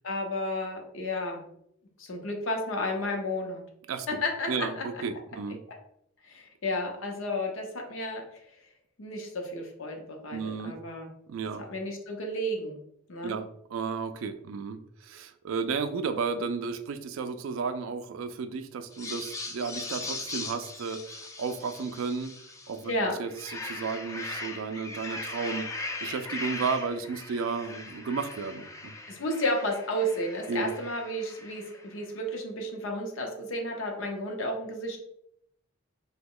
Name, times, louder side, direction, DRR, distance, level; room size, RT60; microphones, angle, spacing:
voice 1, 0.0-1.5 2.0-3.6 4.2-4.8 6.2-8.2 9.0-11.1 11.7-12.8 13.1-13.4 22.8-23.2 29.1-35.0, left 1 dB, 70° left, 2 dB, 0.7 m, -32 dB
voice 2, 3.9-4.2 4.5-5.6 10.3-10.7 11.3-11.6 13.2-22.3 22.7-22.9 23.2-25.7 26.0-28.9 30.5-30.7, right 5 dB, 75° right, 10 dB, 0.3 m, -33 dB
sound 1, 18.9-22.8 23.2-31.9, left 3 dB, 15° left, 0.3 m, -39 dB
2.9 x 2.2 x 3.7 m, 0.74 s
head